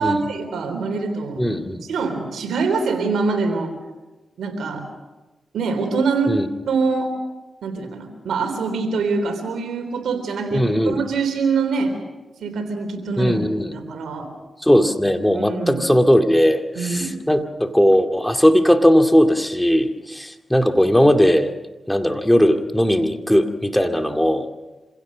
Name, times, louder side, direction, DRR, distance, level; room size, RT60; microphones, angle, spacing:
voice 1, 0.0-1.5 1.9-3.7 4.4-4.8 5.5-6.3 6.6-7.1 7.6-12.0 12.4-13.3 13.7-14.3 15.3-15.8 16.8-17.1, right 4 dB, 90° right, 6 dB, 3.6 m, -24 dB
voice 2, 1.4-1.9 6.3-6.5 10.5-11.0 13.2-13.8 14.6-21.5 21.9-24.5, equal, 5° left, 6 dB, 2.2 m, -18 dB
26.5 x 16.5 x 6.4 m, 1.1 s
cardioid pair, 50°, 0 cm